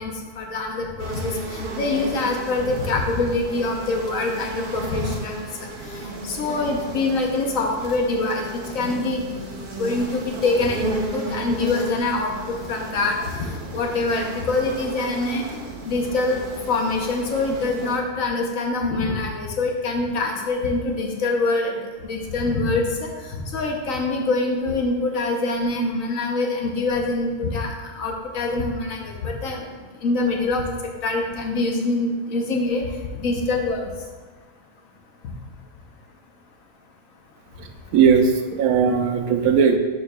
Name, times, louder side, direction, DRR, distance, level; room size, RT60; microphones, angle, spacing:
voice 1, 0.0-5.5 6.2-9.4 9.8-12.3 12.7-21.7 22.0-22.9 23.3-29.6 30.0-30.7 31.0-32.8 33.2-33.9, left 3 dB, 65° left, 1 dB, 1.2 m, -24 dB
sound 1, 1.0-18.0, right 2 dB, 45° right, 0.7 m, -34 dB
voice 2, 37.9-39.8, right 6 dB, 80° right, 6 dB, 1.0 m, -18 dB
11.0 x 4.7 x 2.3 m, 1.3 s
omnidirectional pair, 1.6 m